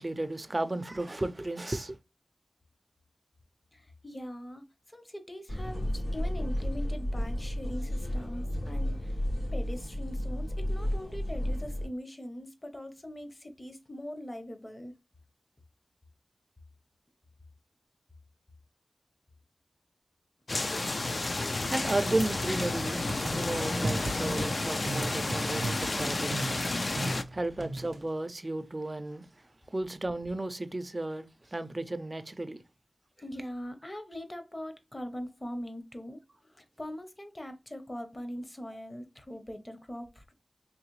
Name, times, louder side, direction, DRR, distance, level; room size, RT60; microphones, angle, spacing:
voice 1, 0.0-2.0 21.7-23.0 23.3-26.5 27.3-29.3 29.7-32.6, right 2 dB, 35° right, 0.5 m, -33 dB
voice 2, 3.7-9.2 9.5-14.9 33.2-40.3, equal, 30° left, 0.8 m, -42 dB
sound 1, 5.5-11.9, equal, 80° left, 2.3 m, -32 dB
sound 2, 20.5-27.2, left 2 dB, 50° left, 0.4 m, -31 dB
sound 3, 23.1-24.5 24.9-28.0, right 2 dB, 85° right, 0.5 m, -36 dB
3.8 x 3.0 x 3.1 m
wide cardioid pair, 60°, 0 cm